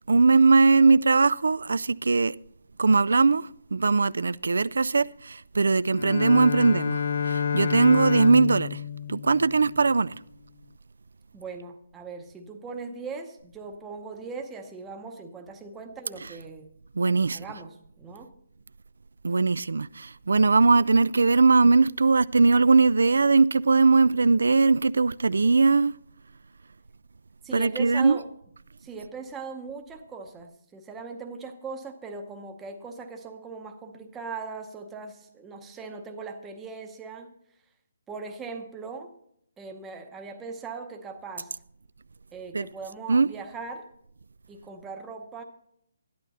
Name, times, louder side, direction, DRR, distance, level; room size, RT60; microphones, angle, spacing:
voice 1, 0.1-2.4 2.8-8.8 9.1-10.2 17.0-17.4 19.2-26.0 27.5-28.2 42.5-42.7 43.1-43.3, right 4 dB, 75° right, 0.4 m, -20 dB
Bowed string instrument, 5.9-10.0, left 7 dB, 40° left, 0.4 m, -29 dB
voice 2, 11.3-16.7 17.3-18.3 27.4-28.3 28.8-37.3 38.1-39.1 39.6-41.5 42.3-43.9 44.5-45.4, right 4 dB, 5° right, 0.8 m, -39 dB
13.0 x 11.5 x 4.1 m
hypercardioid pair, 180°, 0 cm